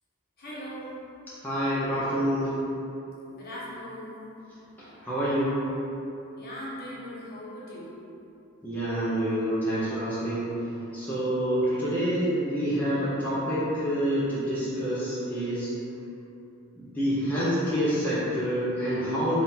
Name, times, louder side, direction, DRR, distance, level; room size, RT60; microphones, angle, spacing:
voice 1, 0.4-0.9 3.3-4.1 6.4-7.9 11.6-11.9, equal, 45° left, -7 dB, 0.9 m, -40 dB
voice 2, 1.4-2.5 4.8-5.6 8.6-10.5 10.9-15.7 16.8-19.4, equal, 10° left, -11 dB, 0.6 m, -27 dB
3.6 x 2.5 x 4.2 m, 2.9 s
head